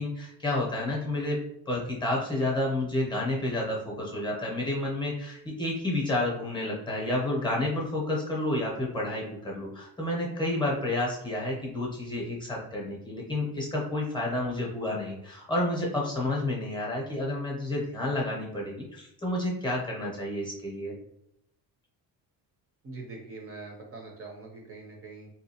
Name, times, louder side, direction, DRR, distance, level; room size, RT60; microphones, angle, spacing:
voice 1, 0.0-1.4 1.7-20.9, left 1 dB, 10° left, -3 dB, 0.7 m, -30 dB
voice 2, 22.8-25.3, right 3 dB, 40° right, 0 dB, 0.6 m, -43 dB
3.6 x 2.7 x 2.7 m, 0.79 s
cardioid pair, 165°, 37 cm